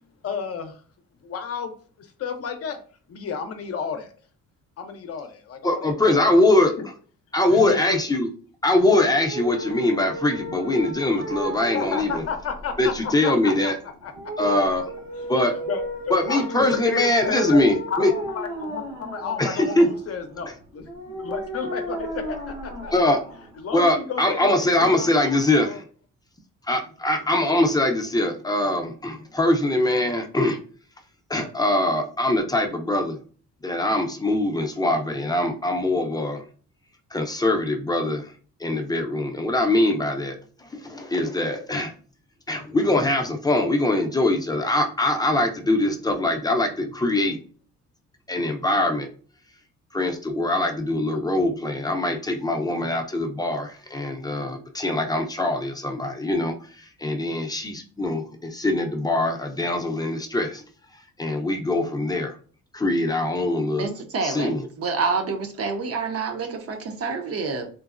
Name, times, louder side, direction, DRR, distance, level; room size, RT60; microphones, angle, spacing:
voice 1, 0.2-0.8 1.2-2.8 3.1-4.1 4.8-6.3 7.5-8.0 11.7-14.1 15.7-17.6 17.9-20.9 21.2-22.9 23.6-25.3 25.6-25.8, left 6 dB, 50° left, 6 dB, 0.6 m, -32 dB
voice 2, 5.6-6.7 7.3-8.3 8.6-12.2 12.8-13.8 14.4-14.9 15.3-15.5 16.1-18.1 19.4-19.9 22.9-23.2 23.7-25.8 26.7-30.6 31.3-33.2 33.6-36.4 37.1-38.3 38.6-41.9 42.5-47.4 48.3-49.1 49.9-60.6 61.2-62.4 62.7-63.9 64.2-64.7, left 1 dB, 15° left, 3 dB, 0.5 m, -22 dB
sound 1, 9.1-24.0, right 1 dB, 70° right, 1.2 m, -35 dB
voice 3, 63.7-67.7, right 4 dB, 50° right, 5 dB, 0.7 m, -28 dB
3.8 x 2.0 x 2.4 m, 0.41 s
cardioid pair, 90°, 30 cm